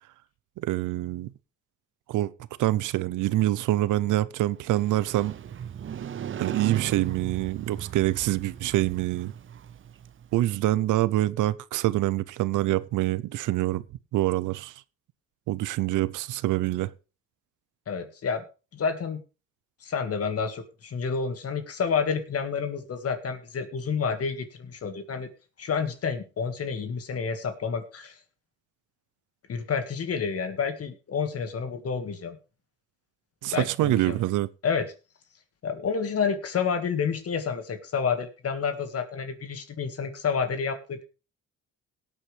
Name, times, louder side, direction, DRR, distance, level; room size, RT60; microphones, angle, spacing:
voice 1, 0.6-1.3 2.1-2.3 2.6-5.3 6.4-9.3 10.3-13.8 14.1-14.7 15.5-16.9 33.4-34.5, right 15 dB, 80° right, 0.6 m, -25 dB
Motorcycle, 4.6-10.5, right 9 dB, 40° right, 0.6 m, -37 dB
voice 2, 17.9-18.4 18.7-19.2 19.8-25.3 25.6-28.2 29.5-32.4 33.5-34.2 34.6-34.9 35.6-41.0, left 6 dB, 50° left, 1.8 m, -29 dB
18.0 x 8.5 x 3.3 m
cardioid pair, 90°, 30 cm